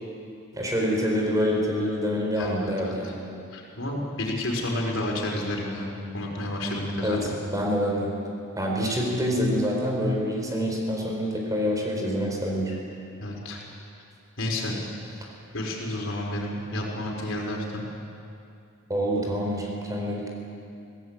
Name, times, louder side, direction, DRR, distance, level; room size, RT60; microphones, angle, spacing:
voice 1, 0.5-3.2 7.0-7.2 7.5-8.2 8.6-12.7 18.9-20.3, equal, 15° right, -1 dB, 4.1 m, -26 dB
voice 2, 2.4-2.9 3.5-5.9 6.1-7.2 13.2-13.6 14.4-14.8 15.5-17.8, left 1 dB, 65° left, -1 dB, 4.8 m, -30 dB
23.0 x 16.5 x 8.8 m, 2.5 s
head